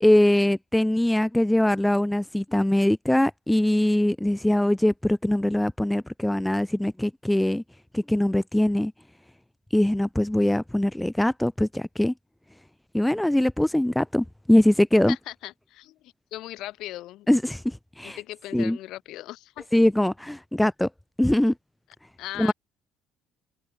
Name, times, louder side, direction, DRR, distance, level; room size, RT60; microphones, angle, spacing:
voice 1, 0.0-7.6 7.9-8.9 9.7-12.1 12.9-15.1 17.3-18.2 18.5-18.8 19.7-20.9 21.2-21.5 22.4-22.5, left 1 dB, 5° left, 1.6 m, -22 dB
voice 2, 15.1-17.3 18.0-19.8 22.2-22.5, left 15 dB, 65° left, 4.7 m, -38 dB
open air
cardioid pair, 155°, 0 cm